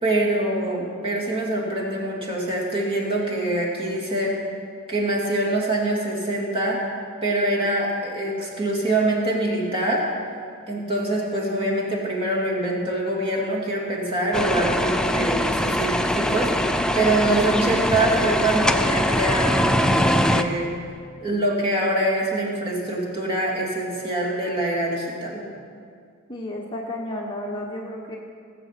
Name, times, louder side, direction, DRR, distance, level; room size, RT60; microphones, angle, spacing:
voice 1, 0.0-4.3 4.9-6.8 7.2-10.0 10.7-16.7 16.9-20.7 21.2-25.4, right 1 dB, 25° right, -4 dB, 2.7 m, -24 dB
sound 1, 14.3-20.4, equal, 5° left, 0.4 m, -22 dB
voice 2, 26.3-28.2, left 1 dB, 20° left, -2 dB, 1.1 m, -32 dB
18.5 x 7.8 x 5.9 m, 2.2 s
head